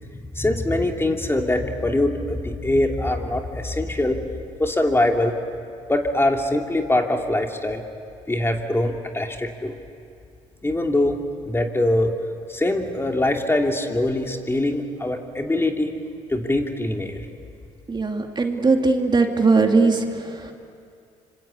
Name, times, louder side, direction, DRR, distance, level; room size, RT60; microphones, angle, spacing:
voice 1, 0.0-4.2 4.6-5.3 5.9-7.8 8.3-9.7 10.6-12.1 12.5-15.9 16.3-17.3, left 1 dB, 15° left, 3 dB, 2.9 m, -23 dB
voice 2, 17.9-20.5, right 3 dB, 30° right, 3 dB, 2.5 m, -20 dB
26.0 x 25.5 x 8.4 m, 2.4 s
hypercardioid pair, 60°, 15 cm